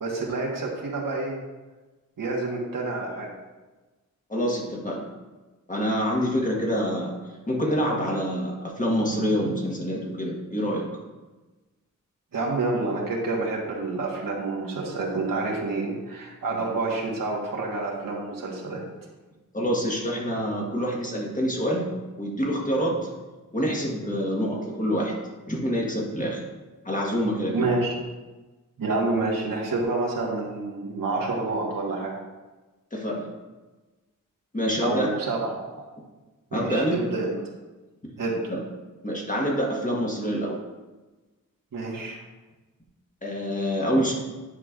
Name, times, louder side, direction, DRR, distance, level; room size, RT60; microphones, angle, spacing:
voice 1, 0.0-1.4 2.2-3.3 12.3-18.8 27.5-27.9 28.8-32.1 34.8-35.5 36.5-37.3 38.2-38.4 41.7-42.2, right 3 dB, 85° right, -2 dB, 1.4 m, -28 dB
voice 2, 4.3-5.0 5.7-7.1 7.5-10.9 19.5-23.1 23.5-25.2 25.5-26.4 26.8-27.6 32.9-33.3 34.5-35.1 36.5-37.0 38.5-38.6 39.0-40.6 43.2-44.1, equal, 25° left, -2 dB, 1.3 m, -26 dB
9.6 x 4.9 x 2.4 m, 1.2 s
wide cardioid pair, 100°, 33 cm